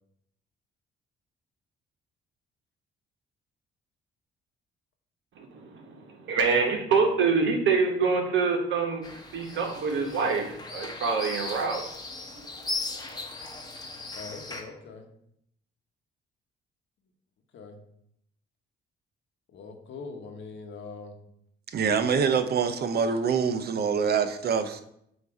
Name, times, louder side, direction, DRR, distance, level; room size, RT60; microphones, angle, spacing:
voice 1, 5.4-9.0 9.3-11.8 12.7-12.8, right 5 dB, 70° right, 3 dB, 1.3 m, -26 dB
sound 1, 9.0-14.6, left 2 dB, 20° left, 1.0 m, -38 dB
voice 2, 14.1-15.1 17.5-17.8 19.5-21.1, left 4 dB, 70° left, 4 dB, 1.1 m, -42 dB
voice 3, 21.7-24.8, right 6 dB, 55° right, 8 dB, 0.7 m, -25 dB
7.9 x 2.7 x 4.8 m, 0.74 s
cardioid pair, 90°, 20 cm